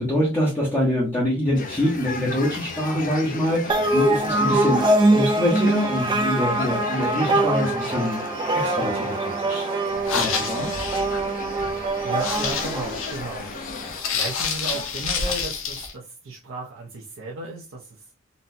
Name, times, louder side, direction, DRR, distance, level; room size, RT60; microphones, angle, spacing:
voice 1, 0.0-8.2 8.5-9.7 10.1-10.8, left 1 dB, 10° left, -5 dB, 0.8 m, -25 dB
sound 1, 1.5-14.0, left 4 dB, 40° left, 0.6 m, -36 dB
sound 2, 3.7-13.5, right 2 dB, 25° right, 0.4 m, -23 dB
sound 3, 9.9-15.9, left 5 dB, 70° left, 0.7 m, -29 dB
voice 2, 12.0-13.5 14.1-18.1, right 2 dB, 65° right, -3 dB, 0.7 m, -34 dB
4.0 x 2.2 x 2.6 m, 0.31 s
head